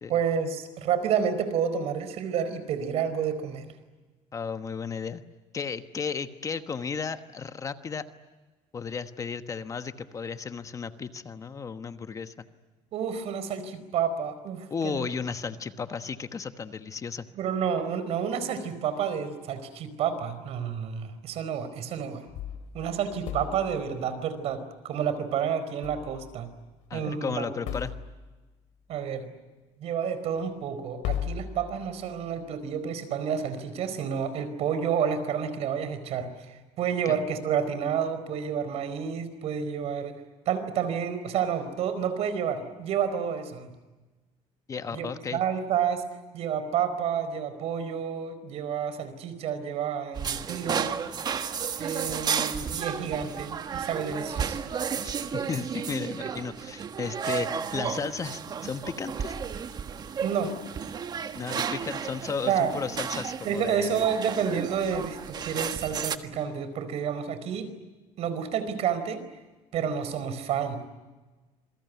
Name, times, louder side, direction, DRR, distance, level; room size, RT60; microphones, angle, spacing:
voice 1, 0.1-3.7 12.9-15.1 17.3-22.2 22.7-26.5 26.9-27.7 28.9-29.3 29.8-40.2 40.5-43.7 44.9-46.0 46.3-50.9 51.8-54.6 60.2-60.6 62.5-62.8 63.4-67.7 68.2-69.2 69.7-70.8, right 7 dB, 60° right, 12 dB, 4.5 m, -30 dB
voice 2, 4.3-5.2 5.5-8.1 8.7-12.5 14.7-17.3 26.9-27.9 37.0-37.2 44.7-45.4 55.0-59.3 61.3-64.0, left 5 dB, 25° left, 10 dB, 1.2 m, -34 dB
sound 1, 22.3-23.9 25.8-26.5 26.8-26.9 27.6-28.4 30.4-30.5 31.0-32.2, left 10 dB, 70° left, 2.7 m, -37 dB
sound 2, 50.1-66.2, right 7 dB, 35° right, 1.5 m, -33 dB
27.5 x 23.0 x 9.3 m, 1.2 s
cardioid pair, 140°, 12 cm